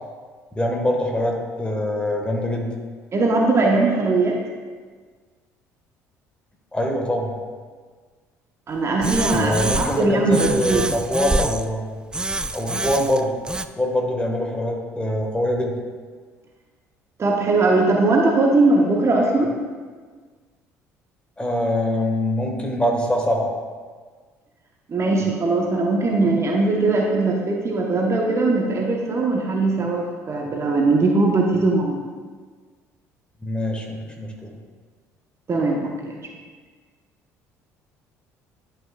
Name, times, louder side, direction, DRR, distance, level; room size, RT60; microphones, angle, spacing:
voice 1, 0.5-2.7 6.7-7.3 9.3-12.0 12.5-13.3 13.8-15.7 21.4-23.5 33.4-34.5, left 1 dB, 10° left, 1 dB, 1.5 m, -24 dB
voice 2, 3.1-4.4 8.7-10.8 17.2-19.5 24.9-32.0 35.5-36.2, right 3 dB, 35° right, 0 dB, 1.0 m, -20 dB
sound 1, 9.0-10.0 10.3-11.7 12.1-13.7, right 2 dB, 10° right, 0.4 m, -25 dB
11.0 x 5.9 x 2.3 m, 1.5 s
figure-of-eight pair, 55°, 8 cm